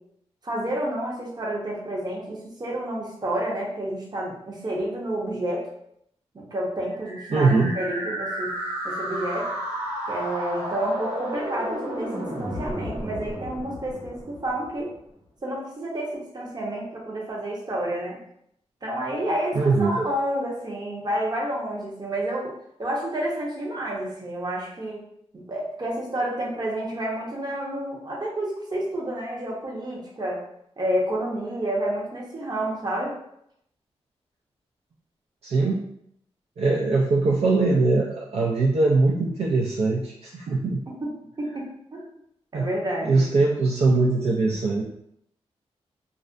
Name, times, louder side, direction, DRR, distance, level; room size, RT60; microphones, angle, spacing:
voice 1, 0.4-5.7 6.3-8.5 8.8-9.5 10.1-14.9 15.4-18.2 18.8-22.5 22.8-25.0 25.3-30.4 30.8-33.1 41.0-41.1 41.4-42.1 42.5-43.3, right 1 dB, 40° right, -3 dB, 0.8 m, -29 dB
sound 1, 6.9-14.8, equal, 85° right, 1.1 m, -32 dB
voice 2, 7.3-7.7 19.5-19.9 35.4-35.8 36.6-40.8 42.5-42.6 43.0-44.8, right 3 dB, 65° right, -3 dB, 0.4 m, -21 dB
2.4 x 2.1 x 2.5 m, 0.74 s
cardioid pair, 60°, 11 cm